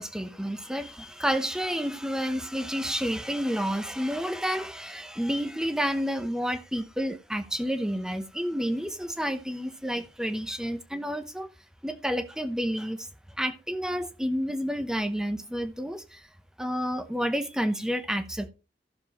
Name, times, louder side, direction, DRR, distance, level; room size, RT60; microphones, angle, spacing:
voice 1, 0.0-11.5 11.8-13.1 13.4-16.3 16.6-18.5, equal, 5° right, 0.8 m, -30 dB
15.5 x 6.8 x 3.0 m
head